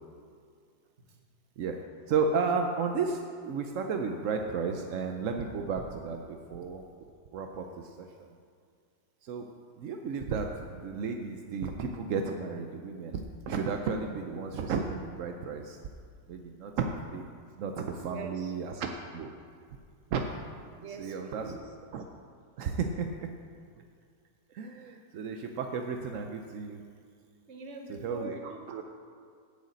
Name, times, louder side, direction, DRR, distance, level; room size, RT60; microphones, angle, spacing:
voice 1, 2.1-6.8 7.3-8.3 9.2-9.5 9.8-15.8 16.3-17.2 17.6-19.3 20.1-20.2 21.0-21.6 21.9-22.0 22.6-23.3 24.5-26.8 28.0-28.3 28.7-28.8, right 5 dB, 70° right, 4 dB, 0.7 m, -33 dB
voice 2, 18.0-18.6 20.8-21.7 27.5-28.8, right 4 dB, 45° right, 3 dB, 1.1 m, -44 dB
8.1 x 6.5 x 8.2 m, 2.2 s
omnidirectional pair, 2.0 m